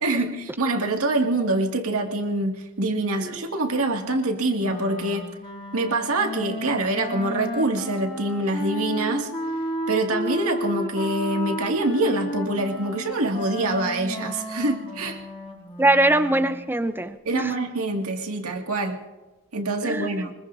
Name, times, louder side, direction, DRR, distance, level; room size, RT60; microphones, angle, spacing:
voice 1, 0.0-5.3 5.7-9.3 9.9-15.2 17.2-19.0 19.5-20.3, right 2 dB, 70° right, 2 dB, 2.2 m, -25 dB
Wind instrument woodwind instrument, 4.6-16.7, left 1 dB, 25° left, 5.4 m, -33 dB
voice 2, 15.8-17.5 19.8-20.3, right 1 dB, 10° right, 10 dB, 0.8 m, -22 dB
24.5 x 21.5 x 2.7 m, 1.1 s
head